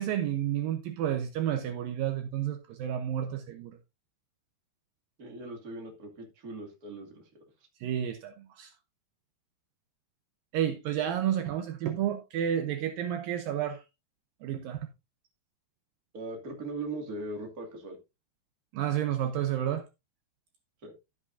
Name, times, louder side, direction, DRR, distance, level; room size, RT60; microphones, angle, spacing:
voice 1, 0.0-3.8 7.8-8.7 10.5-13.8 14.4-14.8 18.7-19.8, right 10 dB, 75° right, 2.4 m, -31 dB
voice 2, 5.2-7.4 16.1-18.0 20.8-20.9, right 2 dB, 30° right, 2.3 m, -39 dB
12.5 x 8.2 x 2.6 m
omnidirectional pair, 4.5 m